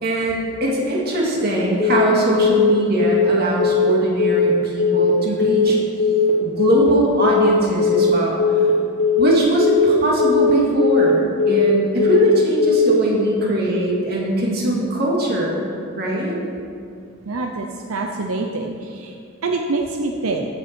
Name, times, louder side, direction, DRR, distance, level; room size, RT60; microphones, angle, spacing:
voice 1, 0.0-5.8 6.4-8.4 9.2-15.6 16.0-16.4, right 1 dB, 50° right, -3 dB, 2.1 m, -21 dB
Telephone, 1.8-2.1 2.4-2.7 3.0-3.3 3.6-3.9 4.2-4.5 4.8-5.1 5.4-5.7 6.0-6.3 6.6-6.9 7.2-7.5 7.8-8.1 8.4-8.7 9.0-9.3 9.6-9.9 10.2-10.5 10.8-11.1 11.4-11.7 12.0-12.3 12.6-12.9, left 6 dB, 25° left, 1.3 m, -17 dB
voice 2, 17.2-19.1 19.4-20.5, right 3 dB, 85° right, 3 dB, 0.7 m, -25 dB
14.5 x 6.8 x 4.5 m, 2.4 s
head